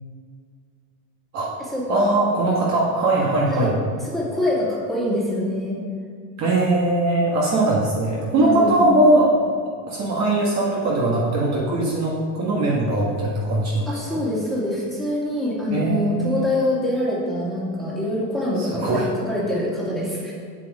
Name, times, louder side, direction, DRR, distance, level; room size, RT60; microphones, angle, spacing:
voice 1, 1.9-3.8 6.4-9.3 9.9-14.2 15.7-16.5 18.6-19.0, right 2 dB, 35° right, -4 dB, 1.5 m, -20 dB
voice 2, 4.1-5.8 8.4-8.9 13.9-20.3, left 1 dB, ahead, -6 dB, 2.3 m, -25 dB
7.8 x 7.6 x 4.9 m, 2.1 s
supercardioid pair, 140°, 47 cm